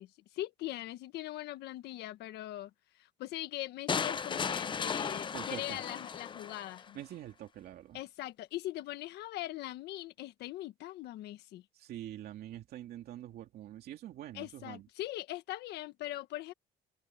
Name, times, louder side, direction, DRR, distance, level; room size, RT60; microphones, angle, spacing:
voice 1, 0.0-7.0 7.9-11.6 14.3-16.5, left 15 dB, 80° left, 1.4 m, -41 dB
sound 1, 3.9-6.9, left 6 dB, 30° left, 0.6 m, -35 dB
voice 2, 5.3-5.8 6.9-8.0 11.7-14.9, right 12 dB, 70° right, 2.6 m, -45 dB
cardioid pair, 110°, 17 cm